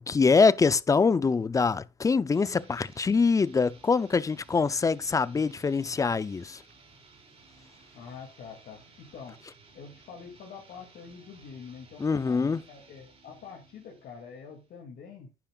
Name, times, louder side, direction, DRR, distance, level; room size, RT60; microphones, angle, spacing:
voice 1, 0.0-6.6 12.0-12.6, left 4 dB, 20° left, 0.5 m, -24 dB
sound 1, 2.3-14.8, right 4 dB, 35° right, 3.9 m, -57 dB
voice 2, 7.9-9.4 9.7-12.4 12.7-15.3, left 6 dB, 65° left, 2.4 m, -46 dB
10.5 x 10.0 x 2.4 m
cardioid pair, 110°, 17 cm